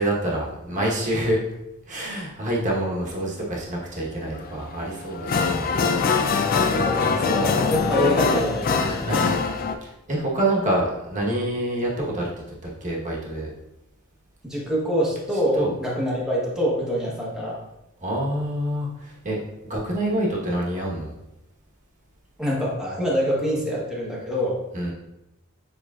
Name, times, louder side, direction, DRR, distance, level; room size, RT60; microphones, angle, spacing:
voice 1, 0.0-1.4 1.9-5.9 8.7-9.5 9.8-12.3 12.8-13.5 15.6-15.7 18.0-19.4 19.7-21.1 24.7-24.9, right 1 dB, 35° right, -3 dB, 1.1 m, -26 dB
sound 1, 4.4-4.5 5.0-9.8, left 5 dB, 40° left, 0.3 m, -22 dB
voice 2, 6.7-8.7 9.1-9.3 14.4-17.6 22.4-24.6, equal, 5° right, -5 dB, 1.0 m, -25 dB
6.9 x 3.1 x 2.4 m, 0.90 s
head